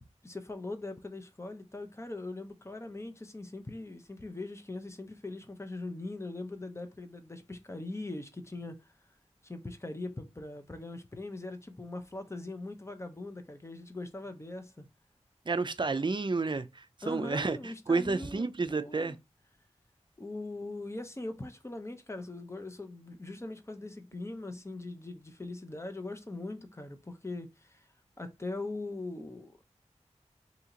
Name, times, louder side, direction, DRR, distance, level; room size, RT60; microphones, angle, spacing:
voice 1, 0.2-8.9 9.4-14.9 17.0-19.2 20.2-27.9 28.2-29.6, left 2 dB, 25° left, 0.7 m, -41 dB
voice 2, 15.5-19.2, right 3 dB, 40° right, 0.4 m, -31 dB
2.8 x 2.8 x 3.7 m
wide cardioid pair, 45°, 12 cm